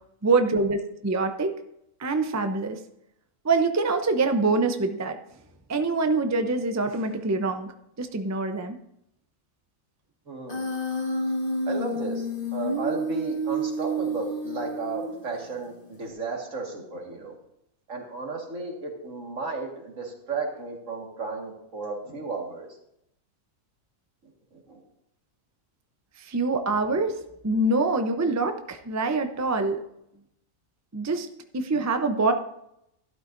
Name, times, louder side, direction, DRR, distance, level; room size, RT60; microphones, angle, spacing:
voice 1, 0.2-1.5 2.0-2.8 3.4-5.2 5.7-7.7 8.0-8.8 26.2-27.2 27.4-29.8 30.9-31.3 31.5-32.3, right 3 dB, 20° right, 7 dB, 0.5 m, -25 dB
voice 2, 10.3-10.7 11.7-17.4 17.9-22.7 24.2-24.8, right 3 dB, 70° right, 0 dB, 2.3 m, -34 dB
Human voice, 10.5-15.5, right 1 dB, 40° left, 1.7 m, -29 dB
12.5 x 12.0 x 2.6 m, 0.78 s
omnidirectional pair, 1.4 m